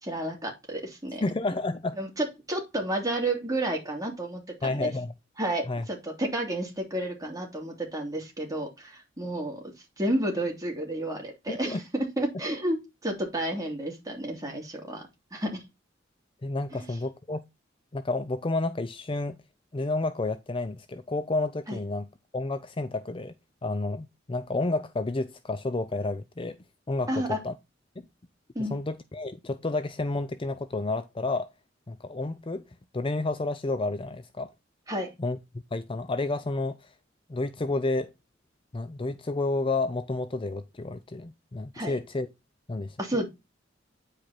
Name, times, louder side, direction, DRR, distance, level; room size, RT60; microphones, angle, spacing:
voice 1, 0.0-1.2 2.0-4.9 5.4-15.6 21.7-21.8 27.1-27.4 28.5-28.8 34.9-35.1 41.7-41.9 43.0-43.3, right 1 dB, 20° right, 3.1 m, -31 dB
voice 2, 1.2-2.0 4.6-5.1 5.7-5.8 11.5-11.8 16.4-17.4 17.9-19.4 19.7-22.1 22.3-23.3 23.6-26.6 26.9-27.5 28.0-28.1 28.6-31.5 31.9-32.6 32.9-34.5 35.2-36.9 37.3-38.1 38.7-42.3 42.7-43.0, left 2 dB, 30° left, 0.5 m, -30 dB
9.7 x 4.9 x 4.4 m
head